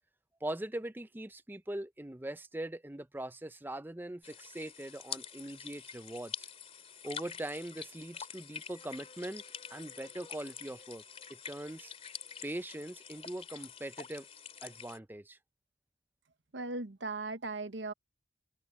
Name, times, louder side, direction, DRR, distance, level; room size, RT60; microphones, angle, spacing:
voice 1, 0.4-6.5 7.0-9.4 9.7-11.0 11.3-11.9 12.4-14.3 14.6-15.4, right 1 dB, 10° right, 0.6 m, -41 dB
sound 1, 4.2-15.0, left 7 dB, 35° left, 2.9 m, -47 dB
voice 2, 16.5-17.9, right 3 dB, 70° right, 1.0 m, -38 dB
open air
head